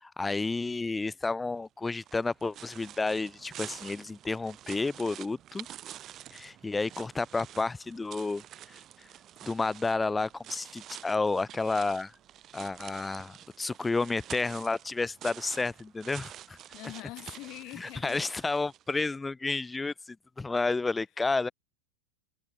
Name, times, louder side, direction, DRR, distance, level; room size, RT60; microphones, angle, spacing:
voice 1, 0.0-5.7 6.3-8.8 9.4-12.1 12.5-16.6 17.8-21.5, left 3 dB, 10° left, 1.5 m, -31 dB
sound 1, 1.9-19.1, right 11 dB, 30° right, 6.1 m, -48 dB
voice 2, 16.7-18.3, left 20 dB, 40° left, 4.1 m, -43 dB
figure-of-eight pair, 90°, 0 cm